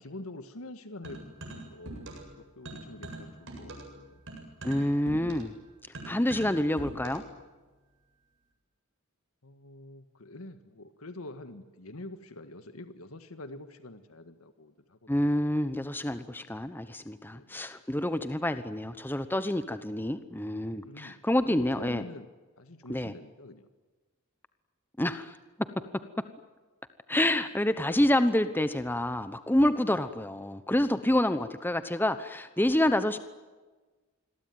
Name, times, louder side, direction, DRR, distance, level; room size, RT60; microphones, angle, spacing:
voice 1, 0.0-2.2 2.5-4.2 9.4-15.5 17.3-17.7 20.8-21.2 21.4-22.3 22.6-23.7 29.8-30.0, left 1 dB, 85° left, 9 dB, 1.7 m, -46 dB
sound 1, 1.0-2.4 2.6-7.4, right 1 dB, 65° right, 7.9 m, -43 dB
voice 2, 4.6-5.5 6.0-7.2 15.1-22.0 22.9-23.1 25.0-25.7 26.2-26.3 27.1-33.2, left 1 dB, 10° left, 11 dB, 1.0 m, -28 dB
28.0 x 22.0 x 9.4 m, 1.3 s
head